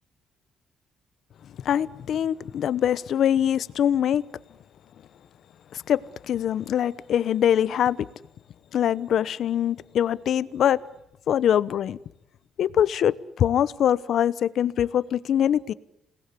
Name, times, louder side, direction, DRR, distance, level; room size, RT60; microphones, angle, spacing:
voice 1, 1.6-4.2 5.7-8.1 8.7-10.8 11.3-12.0 12.6-15.7, left 10 dB, 65° left, 1.0 m, -23 dB
28.5 x 19.5 x 9.8 m
cardioid pair, 120°, 0 cm